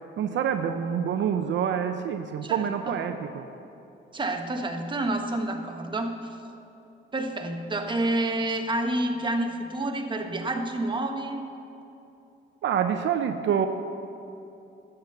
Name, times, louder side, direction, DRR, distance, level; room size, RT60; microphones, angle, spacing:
voice 1, 0.2-3.5 12.6-13.7, right 8 dB, 70° right, 7 dB, 0.7 m, -27 dB
voice 2, 2.4-2.9 4.1-6.4 7.1-11.5, right 1 dB, 25° right, 4 dB, 1.3 m, -29 dB
12.5 x 8.6 x 6.7 m, 2.9 s
cardioid pair, 90°, 20 cm